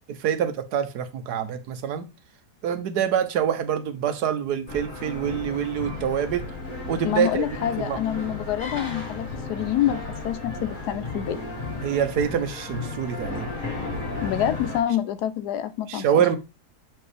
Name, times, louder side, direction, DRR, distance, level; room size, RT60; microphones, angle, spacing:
voice 1, 0.2-2.0 2.6-6.5 6.9-8.0 11.8-13.5 15.9-16.4, right 8 dB, 80° right, 1.3 m, -25 dB
sound 1, 4.7-14.8, left 3 dB, 30° left, 1.8 m, -34 dB
voice 2, 7.0-11.4 14.2-16.3, left 11 dB, 80° left, 1.2 m, -27 dB
6.7 x 4.6 x 3.3 m
omnidirectional pair, 1.7 m